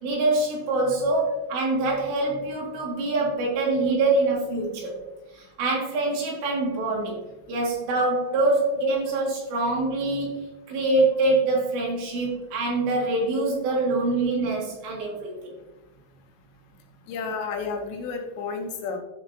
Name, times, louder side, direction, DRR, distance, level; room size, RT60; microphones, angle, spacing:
voice 1, 0.0-4.9 5.3-7.2 7.5-10.3 10.7-15.4, right 2 dB, 70° right, -3 dB, 4.4 m, -24 dB
voice 2, 17.1-19.0, left 4 dB, 75° left, 3 dB, 2.9 m, -31 dB
11.5 x 7.8 x 2.8 m, 1.0 s
omnidirectional pair, 5.3 m